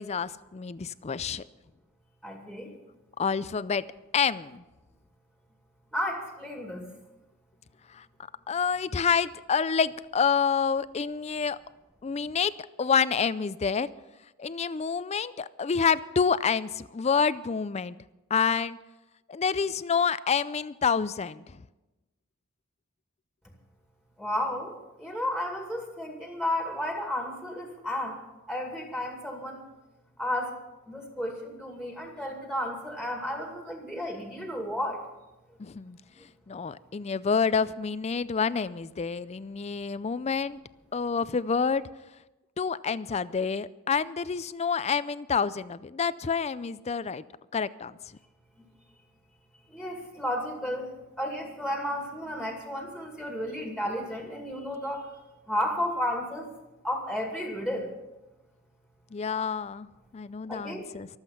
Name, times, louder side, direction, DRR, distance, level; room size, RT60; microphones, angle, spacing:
voice 1, 0.0-1.4 3.2-3.9 4.1-4.6 7.9-8.1 8.5-11.6 12.0-13.9 14.4-18.0 18.3-18.8 19.3-21.6 35.6-36.0 36.5-40.6 40.9-41.9 42.6-47.2 47.5-48.0 59.1-59.9 60.1-61.1, left 6 dB, 30° left, 0.4 m, -28 dB
voice 2, 2.2-2.7 5.9-6.9 24.2-24.7 25.0-28.2 28.5-29.7 30.2-30.5 30.9-35.0 49.7-50.9 51.2-55.1 55.5-56.6 56.8-57.9 60.5-60.9, left 1 dB, 5° right, 2.3 m, -32 dB
24.0 x 8.1 x 5.7 m
head